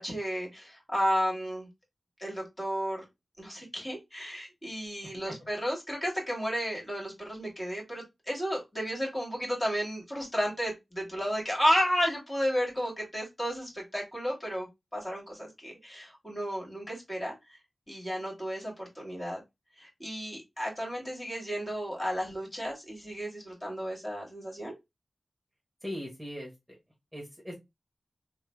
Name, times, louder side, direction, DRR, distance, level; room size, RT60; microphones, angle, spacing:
voice 1, 0.0-1.7 2.2-3.0 3.4-14.7 14.9-17.6 17.9-19.4 19.8-24.7, equal, 25° left, 2.0 m, -32 dB
voice 2, 5.0-5.3 25.8-26.8 27.1-27.5, equal, 10° right, 1.4 m, -40 dB
3.1 x 2.1 x 3.2 m
cardioid pair, 45°, 0 cm